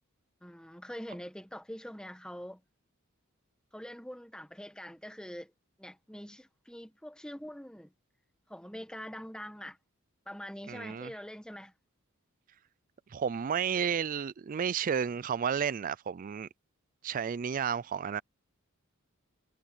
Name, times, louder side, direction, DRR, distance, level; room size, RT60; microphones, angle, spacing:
voice 1, 0.4-2.6 3.7-5.5 5.8-7.9 8.5-9.8 10.2-11.7, equal, 5° left, 1.6 m, -44 dB
voice 2, 10.7-11.1 13.1-16.5 17.0-18.2, right 7 dB, 40° right, 0.4 m, -32 dB
head